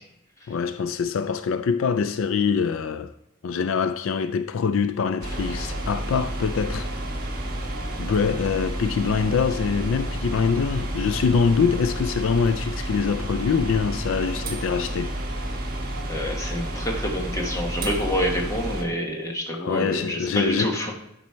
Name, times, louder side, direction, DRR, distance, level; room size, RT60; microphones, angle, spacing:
voice 1, 0.5-3.1 3.4-6.9 8.0-15.2 19.5-20.8, left 5 dB, 70° left, 0.4 m, -24 dB
sound 1, 5.2-18.8, right 1 dB, 45° right, 1.3 m, -30 dB
voice 2, 16.1-20.9, equal, 15° left, 1.3 m, -27 dB
10.5 x 4.1 x 4.5 m
head